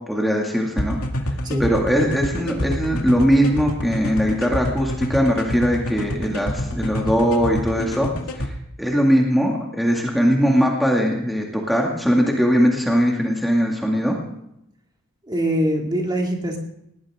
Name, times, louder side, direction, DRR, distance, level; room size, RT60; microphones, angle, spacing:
voice 1, 0.1-1.0 1.6-8.1 8.4-8.5 8.8-14.2, equal, ahead, -1 dB, 2.2 m, -20 dB
sound 1, 0.8-8.5, left 1 dB, 75° left, 2.3 m, -26 dB
voice 2, 1.3-1.7 15.2-16.6, equal, 20° right, 1 dB, 2.5 m, -23 dB
20.5 x 18.5 x 3.7 m, 0.79 s
head